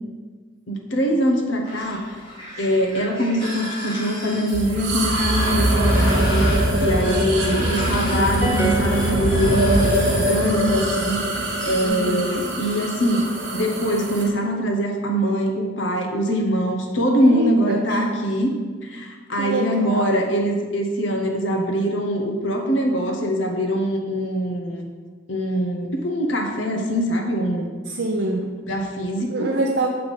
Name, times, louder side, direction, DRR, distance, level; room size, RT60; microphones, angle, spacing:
voice 1, 0.7-2.1 2.6-6.5 6.8-13.2 13.5-18.5 18.8-24.9 25.3-27.7 28.7-29.5, equal, 85° left, 2 dB, 0.9 m, -23 dB
sound 1, 1.6-11.9, left 1 dB, 25° left, 1.7 m, -33 dB
sound 2, 4.5-14.3, right 1 dB, 90° right, 1.2 m, -22 dB
voice 2, 7.6-8.0 11.8-12.5 17.2-18.1 19.4-20.3 27.9-28.5 29.3-29.9, right 2 dB, 65° right, 0 dB, 0.6 m, -25 dB
sound 3, 8.4-10.1, right 1 dB, 10° right, 0.6 m, -28 dB
7.0 x 3.4 x 5.2 m, 1.5 s
head